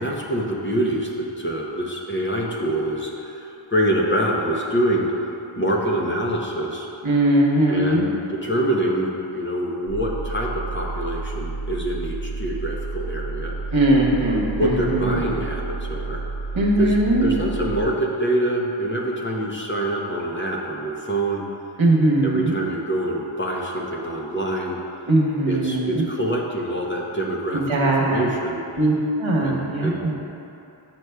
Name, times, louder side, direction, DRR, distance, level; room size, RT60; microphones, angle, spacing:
voice 1, 0.0-5.1 5.5-6.9 7.7-13.5 14.3-16.2 16.8-21.5 22.2-24.8 25.5-28.6 29.4-30.1, right 1 dB, 25° left, -2 dB, 0.7 m, -25 dB
voice 2, 7.0-8.1 13.7-15.3 16.5-17.3 21.8-22.6 25.1-26.0 27.5-28.3 28.8-28.9 29.2-30.1, right 1 dB, 75° right, -3 dB, 1.0 m, -20 dB
sound 1, 9.9-17.9, right 3 dB, 60° left, 0.7 m, -31 dB
8.0 x 6.0 x 2.2 m, 2.8 s
wide cardioid pair, 65°, 48 cm